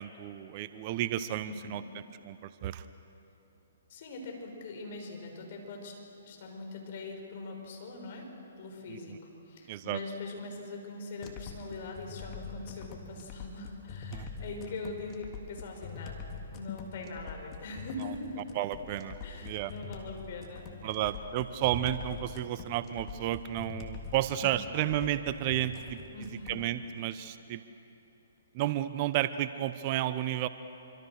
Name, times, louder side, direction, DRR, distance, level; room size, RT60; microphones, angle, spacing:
voice 1, 0.0-1.8 2.2-2.8 8.9-9.2 9.7-10.0 14.1-14.3 18.0-18.1 18.5-19.7 20.8-26.0 26.5-27.6 28.5-30.5, right 12 dB, 40° right, 13 dB, 0.9 m, -32 dB
voice 2, 1.4-1.8 3.9-5.9 6.2-8.3 8.6-16.2 16.5-18.4 19.2-21.0 26.1-26.6, left 3 dB, 50° left, 2 dB, 6.1 m, -42 dB
sound 1, 11.2-26.6, left 5 dB, 30° left, 3.2 m, -44 dB
26.5 x 25.5 x 6.7 m, 2.9 s
figure-of-eight pair, 125°, 0 cm